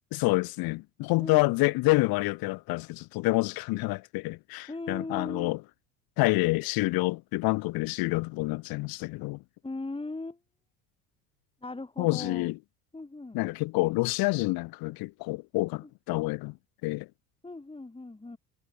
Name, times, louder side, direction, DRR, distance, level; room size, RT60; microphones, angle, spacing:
voice 1, 0.1-5.6 6.2-9.4 12.0-12.6 13.3-16.6 16.8-17.1, left 22 dB, 50° left, 0.8 m, -28 dB
voice 2, 4.7-5.5 9.6-10.4 11.6-12.5 12.9-13.4 15.8-15.9 17.4-18.4, left 2 dB, 10° left, 4.6 m, -38 dB
hypercardioid pair, 70°, 48 cm